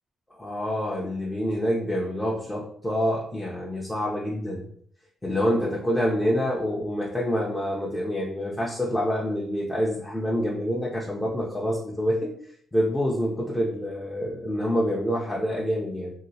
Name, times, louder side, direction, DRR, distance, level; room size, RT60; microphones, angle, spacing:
voice 1, 0.4-4.6 5.2-12.3 12.7-16.1, equal, 10° left, -4 dB, 0.6 m, -27 dB
2.8 x 2.7 x 2.7 m, 0.63 s
cardioid pair, 90°, 0 cm